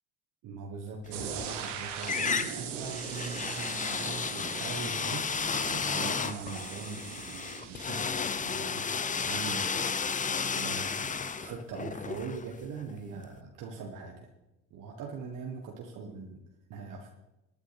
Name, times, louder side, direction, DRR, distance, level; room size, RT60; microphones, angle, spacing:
voice 1, 0.4-5.3 5.7-8.9 9.2-9.8 10.3-14.3 14.7-17.1, right 4 dB, 60° right, 1 dB, 1.7 m, -41 dB
sound 1, 1.1-1.7 2.0-12.9, left 5 dB, 20° left, 0.7 m, -33 dB
sound 2, 1.1-7.9, right 7 dB, 85° right, 1.5 m, -40 dB
19.0 x 9.4 x 3.5 m, 0.97 s
hypercardioid pair, 65°, 35 cm